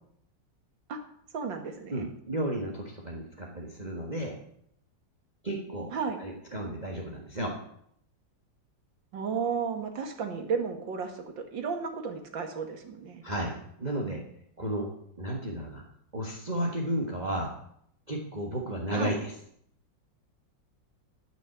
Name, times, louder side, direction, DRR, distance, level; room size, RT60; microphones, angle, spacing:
voice 1, 1.3-2.1 5.9-6.2 9.1-13.2 18.9-19.2, right 6 dB, 85° right, 5 dB, 2.4 m, -33 dB
voice 2, 1.9-4.3 5.4-5.9 6.2-7.5 13.2-14.2 14.6-14.9 15.2-15.8 16.1-17.5 18.1-19.3, right 1 dB, 25° right, -1 dB, 1.7 m, -33 dB
12.5 x 6.5 x 8.2 m, 0.70 s
omnidirectional pair, 2.0 m